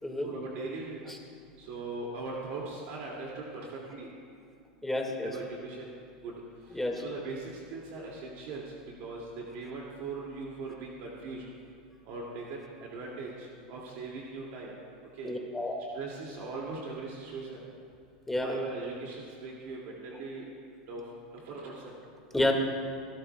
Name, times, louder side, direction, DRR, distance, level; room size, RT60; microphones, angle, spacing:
voice 1, 0.2-1.2 1.6-4.1 4.9-6.0 6.2-6.3 6.7-8.6 9.0-11.4 12.1-14.7 15.1-15.3 15.9-17.6 18.4-20.5 20.9-21.0 21.3-21.9, right 3 dB, 60° right, -3 dB, 2.3 m, -40 dB
voice 2, 4.8-5.3 6.7-7.0 15.2-15.8 18.3-18.6 22.3-22.5, left 2 dB, 5° left, 1 dB, 1.9 m, -30 dB
26.5 x 12.5 x 2.3 m, 2.3 s
supercardioid pair, 120°, 4 cm